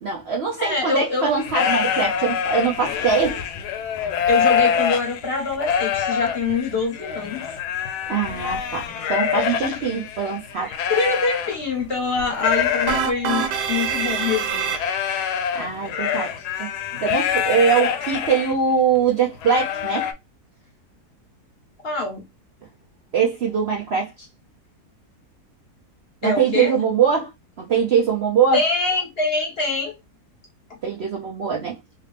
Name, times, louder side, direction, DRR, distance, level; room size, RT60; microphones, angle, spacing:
voice 1, 0.0-3.4 8.1-10.7 15.5-16.3 16.6-20.1 23.1-24.3 26.2-27.3 27.6-28.6 30.8-31.8, right 6 dB, 60° right, 0.7 m, -22 dB
voice 2, 0.6-1.3 4.3-7.4 9.6-9.8 10.6-14.7 21.8-22.2 26.2-26.7 28.5-29.9, left 3 dB, 45° left, 0.9 m, -24 dB
sound 1, 1.3-11.9 12.2-18.5 19.0-19.1 19.4-20.1, left 8 dB, 80° left, 1.1 m, -25 dB
sound 2, 12.9-15.3, right 6 dB, 85° right, 1.2 m, -25 dB
2.9 x 2.8 x 3.3 m
omnidirectional pair, 1.7 m